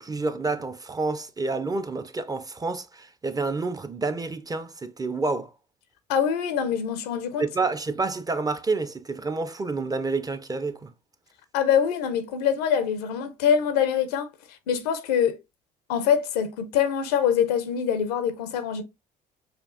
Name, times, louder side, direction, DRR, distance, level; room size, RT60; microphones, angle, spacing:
voice 1, 0.0-5.5 7.4-10.9, right 3 dB, 20° right, 0.4 m, -29 dB
voice 2, 6.1-7.4 11.5-14.3 14.7-15.4 15.9-18.8, left 8 dB, 85° left, 0.6 m, -24 dB
5.0 x 2.4 x 2.3 m
hypercardioid pair, 60°, 20 cm